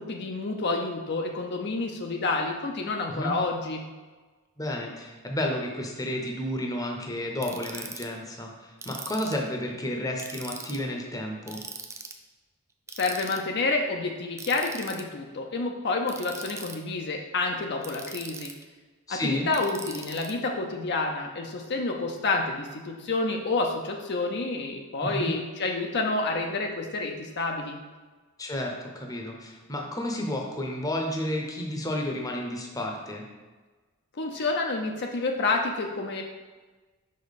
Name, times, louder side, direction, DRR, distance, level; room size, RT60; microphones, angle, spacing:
voice 1, 0.0-3.8 12.9-18.5 19.1-27.8 34.2-36.2, left 3 dB, 50° left, 2 dB, 0.6 m, -29 dB
voice 2, 4.6-11.6 19.1-19.5 25.0-25.3 28.4-33.2, left 1 dB, 15° left, 1 dB, 0.8 m, -31 dB
Ratchet pawl, 7.4-8.0 8.8-9.5 10.2-10.8 11.5-12.2 12.9-13.4 14.4-15.0 16.1-16.8 17.8-18.6 19.5-20.3, right 4 dB, 15° right, 0.4 m, -40 dB
5.7 x 5.2 x 4.1 m, 1.3 s
head